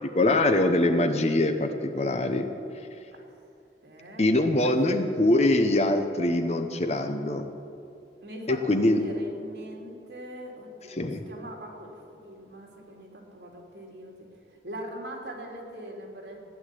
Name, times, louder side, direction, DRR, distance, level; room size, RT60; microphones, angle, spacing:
voice 1, 0.0-2.5 4.2-7.5 8.5-9.0 10.9-11.2, left 1 dB, 35° left, 7 dB, 1.0 m, -23 dB
voice 2, 3.8-4.2 4.6-4.9 8.2-12.0 12.2-16.4, equal, 70° right, 0 dB, 3.0 m, -41 dB
15.5 x 10.5 x 8.5 m, 2.6 s
head